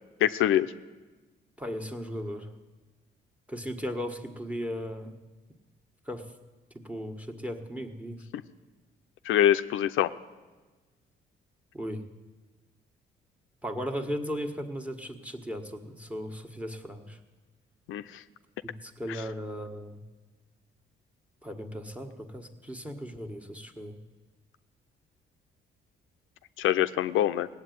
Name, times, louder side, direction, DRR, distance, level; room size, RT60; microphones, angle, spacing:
voice 1, 0.2-0.7 9.3-10.1 17.9-18.0 26.6-27.5, left 11 dB, 85° left, 11 dB, 0.6 m, -24 dB
voice 2, 1.6-2.5 3.5-5.1 6.1-6.3 6.8-8.2 11.7-12.0 13.6-17.2 18.6-20.0 21.4-24.0, equal, 5° right, 6 dB, 1.4 m, -36 dB
17.5 x 8.1 x 9.3 m, 1.3 s
cardioid pair, 90°, 20 cm